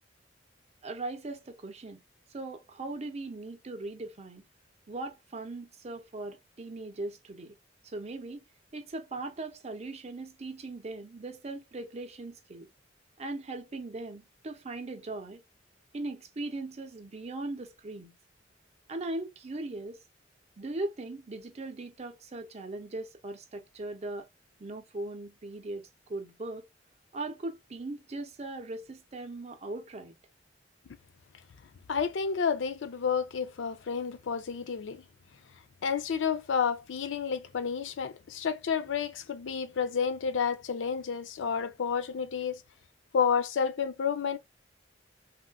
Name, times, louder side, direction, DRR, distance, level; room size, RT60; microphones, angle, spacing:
voice 1, 0.8-2.0 2.3-4.4 4.9-7.6 7.8-8.4 8.7-12.7 13.2-15.4 15.9-18.2 18.9-20.0 20.6-24.3 24.6-26.7 27.1-30.1, right 2 dB, 35° right, 0.6 m, -39 dB
voice 2, 31.9-35.0 35.8-42.6 43.1-44.4, left 6 dB, 85° left, 0.4 m, -30 dB
3.5 x 2.4 x 2.2 m
head